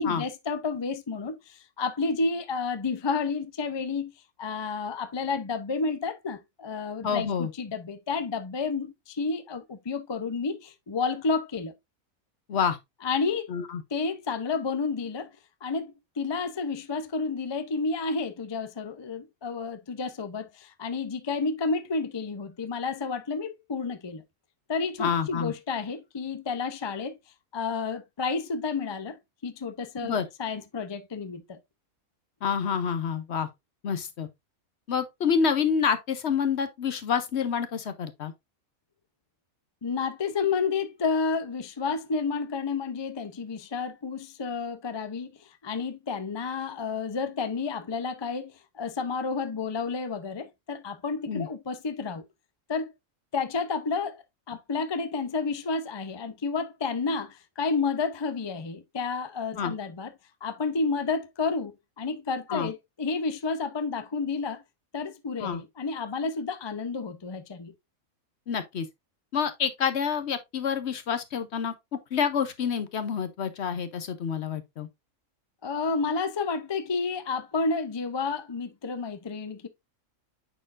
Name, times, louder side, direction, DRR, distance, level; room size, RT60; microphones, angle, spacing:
voice 1, 0.0-4.1 4.4-11.7 13.0-13.5 13.9-15.3 15.6-24.2 24.7-27.2 27.5-29.2 29.4-31.6 39.8-52.2 52.7-52.9 53.3-54.2 54.5-60.1 60.4-64.6 64.9-67.7 75.6-79.7, left 4 dB, 35° left, 0.4 m, -30 dB
voice 2, 7.0-7.5 12.5-12.8 13.5-13.8 25.0-25.5 30.0-30.3 32.4-33.5 33.8-34.3 34.9-38.3 51.3-51.5 59.6-59.7 62.5-62.7 65.4-65.6 68.5-68.9 69.3-74.9, left 7 dB, 60° left, 0.9 m, -28 dB
8.9 x 4.4 x 2.5 m
omnidirectional pair, 1.5 m